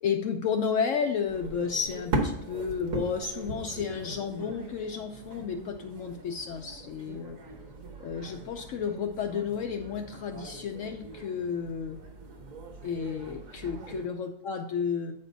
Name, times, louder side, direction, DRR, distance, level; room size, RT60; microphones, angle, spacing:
voice 1, 0.0-7.4 8.0-12.0 12.8-15.1, left 6 dB, 70° left, 4 dB, 0.9 m, -32 dB
sound 1, 1.3-14.1, right 2 dB, 70° right, 1.4 m, -39 dB
7.7 x 5.3 x 4.0 m, 0.71 s
omnidirectional pair, 1.5 m